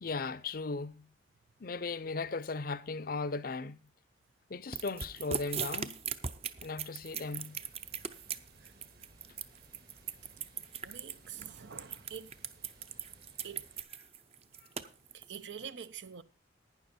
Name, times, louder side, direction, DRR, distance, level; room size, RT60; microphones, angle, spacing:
voice 1, 0.0-1.1 1.6-3.8 4.5-6.0 6.6-7.6, left 3 dB, 50° left, 0.6 m, -37 dB
sound 1, 4.7-15.4, right 7 dB, 35° right, 0.6 m, -39 dB
Water, 7.0-13.8, right 2 dB, 60° right, 2.1 m, -61 dB
voice 2, 10.8-12.3 13.4-13.7 15.1-16.2, right 7 dB, 80° right, 0.7 m, -46 dB
11.5 x 9.6 x 4.3 m
head